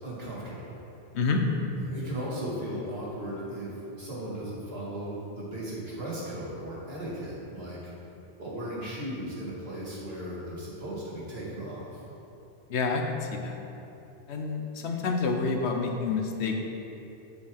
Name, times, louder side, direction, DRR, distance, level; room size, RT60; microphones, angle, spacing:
voice 1, 0.0-0.8 1.7-7.9 8.4-12.0, right 1 dB, 65° right, -7 dB, 2.1 m, -36 dB
voice 2, 12.7-13.6 14.3-16.6, left 4 dB, 90° left, 3 dB, 1.0 m, -28 dB
8.0 x 6.8 x 3.5 m, 2.9 s
omnidirectional pair, 1.1 m